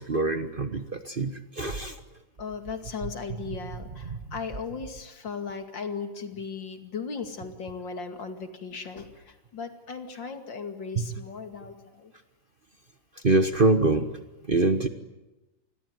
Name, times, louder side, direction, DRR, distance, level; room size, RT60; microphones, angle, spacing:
voice 1, 0.0-1.9 3.0-3.1 4.1-4.2 10.9-11.1 13.2-14.1 14.5-14.9, right 3 dB, 30° right, 9 dB, 1.3 m, -24 dB
voice 2, 2.4-12.1, left 5 dB, 70° left, 7 dB, 3.1 m, -37 dB
28.0 x 21.0 x 9.5 m, 1.0 s
omnidirectional pair, 2.1 m